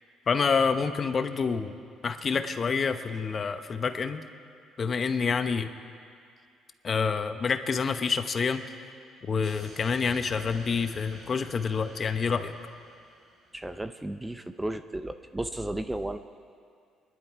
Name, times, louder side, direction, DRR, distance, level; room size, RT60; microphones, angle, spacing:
voice 1, 0.3-1.8 2.0-4.2 4.8-5.7 6.8-8.6 9.2-12.5, left 5 dB, 35° left, 9 dB, 0.9 m, -27 dB
sound 1, 9.4-13.8, right 1 dB, 55° right, 4.7 m, -50 dB
voice 2, 13.5-16.2, right 1 dB, 10° right, 9 dB, 0.5 m, -34 dB
26.0 x 11.0 x 4.7 m, 2.3 s
cardioid pair, 115°, 0 cm